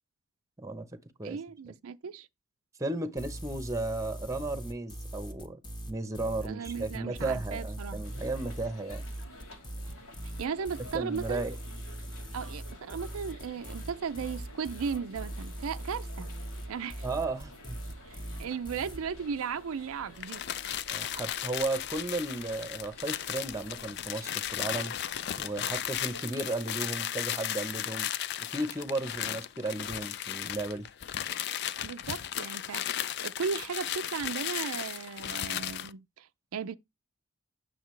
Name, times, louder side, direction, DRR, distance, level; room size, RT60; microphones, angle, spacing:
voice 1, 1.2-2.3 6.4-8.0 10.4-11.4 12.3-16.3 16.7-17.1 18.1-20.4 31.8-36.7, right 6 dB, 80° right, 0.4 m, -36 dB
voice 2, 2.8-5.6 5.9-9.0 10.9-11.5 17.0-17.8 20.9-25.0 25.4-28.1 28.5-30.9, right 2 dB, 15° right, 0.9 m, -34 dB
sound 1, 3.2-19.0, right 1 dB, 20° left, 1.0 m, -40 dB
sound 2, 8.0-26.6, left 1 dB, 90° left, 2.7 m, -51 dB
sound 3, 20.1-35.9, left 11 dB, 50° left, 0.4 m, -35 dB
8.7 x 6.6 x 3.2 m
head